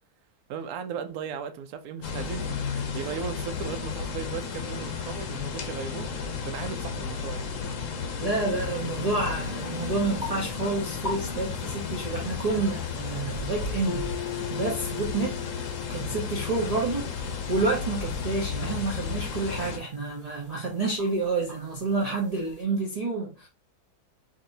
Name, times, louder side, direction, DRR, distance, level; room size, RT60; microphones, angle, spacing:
voice 1, 0.5-7.5, right 7 dB, 70° right, 1.0 m, -37 dB
sound 1, 2.0-19.8, left 6 dB, 60° left, 1.0 m, -33 dB
voice 2, 8.2-14.1 14.5-15.4 15.9-23.5, right 3 dB, 35° right, 0.6 m, -29 dB
sound 2, 8.5-22.6, equal, 15° left, 1.1 m, -44 dB
Acoustic guitar, 13.9-17.5, left 15 dB, 80° left, 1.2 m, -39 dB
5.1 x 2.7 x 2.6 m
omnidirectional pair, 1.7 m